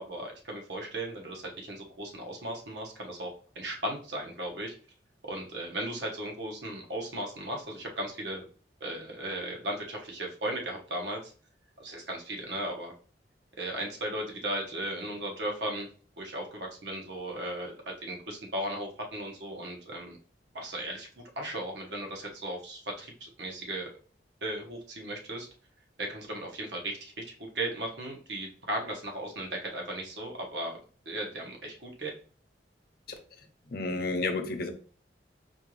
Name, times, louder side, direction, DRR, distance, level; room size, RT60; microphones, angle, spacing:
voice 1, 0.0-3.3 3.5-4.7 5.2-8.4 8.8-11.3 11.8-12.9 13.6-15.9 16.2-17.7 18.0-20.2 20.5-21.1 21.4-23.9 24.4-25.5 26.0-27.1 27.4-30.8 31.1-32.1, right 1 dB, 70° right, 1 dB, 1.1 m, -36 dB
voice 2, 33.6-34.7, left 3 dB, 55° left, 5 dB, 0.6 m, -31 dB
4.4 x 2.5 x 3.1 m, 0.40 s
head